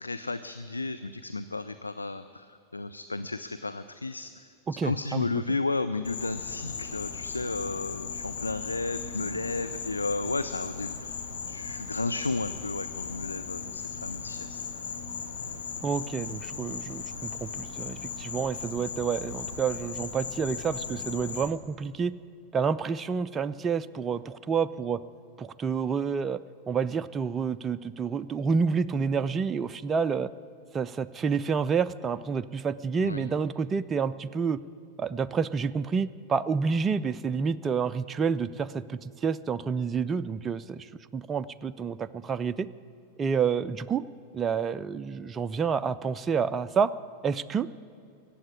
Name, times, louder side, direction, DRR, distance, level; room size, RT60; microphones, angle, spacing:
voice 1, 0.0-4.4 4.7-11.2 11.5-14.6 33.0-33.3, left 3 dB, 80° left, 11 dB, 0.4 m, -33 dB
voice 2, 4.7-5.4 15.8-22.1 22.5-25.0 25.4-26.4 26.7-30.3 30.7-34.6 35.0-42.7 43.2-44.0 44.3-46.9 47.2-47.7, right 6 dB, 20° right, 12 dB, 0.4 m, -29 dB
Insect, 6.0-21.5, left 6 dB, 60° left, 1.2 m, -37 dB
15.0 x 8.5 x 9.8 m, 2.5 s
figure-of-eight pair, 90°, 0 cm